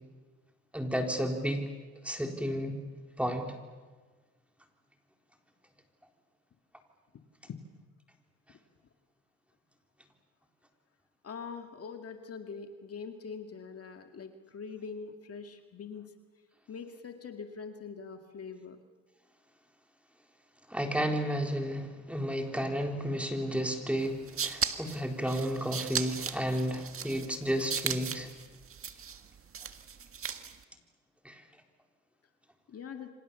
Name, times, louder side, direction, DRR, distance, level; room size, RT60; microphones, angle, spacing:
voice 1, 0.7-1.6 2.0-2.8 3.2-3.5 20.7-28.3 31.2-31.4, equal, 5° right, 3 dB, 4.0 m, -32 dB
voice 2, 11.2-16.1 16.7-18.8 32.7-33.1, left 5 dB, 50° left, 5 dB, 2.1 m, -43 dB
sound 1, 24.0-30.6, right 7 dB, 45° right, 1.8 m, -37 dB
28.5 x 25.5 x 7.1 m, 1.4 s
cardioid pair, 90°, 30 cm